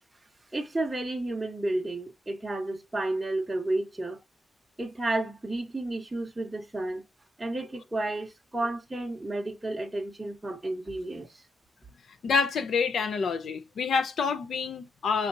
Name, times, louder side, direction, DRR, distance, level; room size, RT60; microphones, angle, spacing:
voice 1, 0.5-4.2 4.8-7.1 7.4-11.3, right 2 dB, 10° right, 1.1 m, -32 dB
voice 2, 12.2-15.3, left 5 dB, 85° left, 0.7 m, -27 dB
5.0 x 2.9 x 2.6 m
wide cardioid pair, 160°, 0 cm